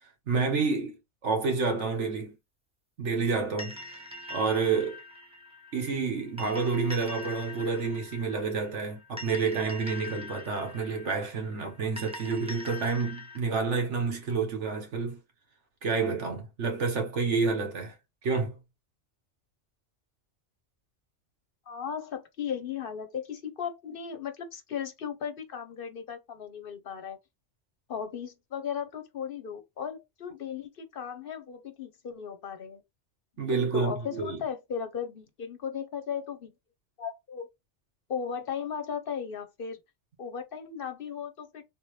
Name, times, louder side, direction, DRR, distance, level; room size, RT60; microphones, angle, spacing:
voice 1, 0.3-1.0 1.2-2.4 3.0-4.0 4.3-5.0 5.7-15.2 15.8-17.9 18.2-18.6 33.4-34.4, right 4 dB, 80° right, 1.5 m, -29 dB
sound 1, 3.6-13.4, left 2 dB, 5° right, 0.8 m, -43 dB
voice 2, 21.7-27.2 27.9-32.8 33.5-36.5 37.0-37.5 38.1-39.8 40.2-41.6, left 7 dB, 55° left, 0.8 m, -36 dB
3.6 x 2.9 x 3.1 m
omnidirectional pair, 1.2 m